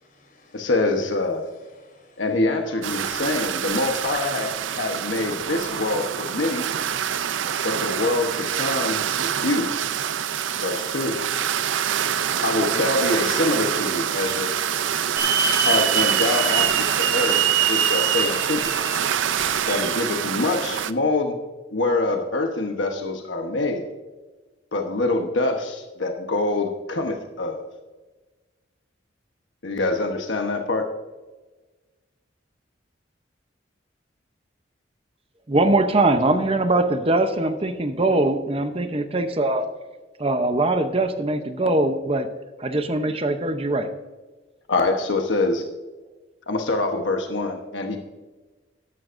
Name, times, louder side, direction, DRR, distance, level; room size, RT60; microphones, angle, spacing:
voice 1, 0.0-0.8 1.2-2.4, left 1 dB, 45° left, 3.5 m, -57 dB
voice 2, 0.5-1.5 2.2-6.7 7.6-9.7 10.6-11.2 12.4-14.7 15.7-17.4 17.7-18.7 19.7-21.4 21.7-23.9 24.7-27.7 29.6-30.9 44.7-45.6 46.5-48.0, left 2 dB, 75° left, 1.1 m, -25 dB
sound 1, 2.8-20.9, right 9 dB, 85° right, 0.5 m, -26 dB
Hiss / Alarm, 15.2-20.0, right 7 dB, 60° right, 1.8 m, -24 dB
voice 3, 35.5-39.6 40.2-42.3 42.6-43.9, right 2 dB, 30° right, 0.7 m, -22 dB
13.5 x 11.0 x 2.6 m
head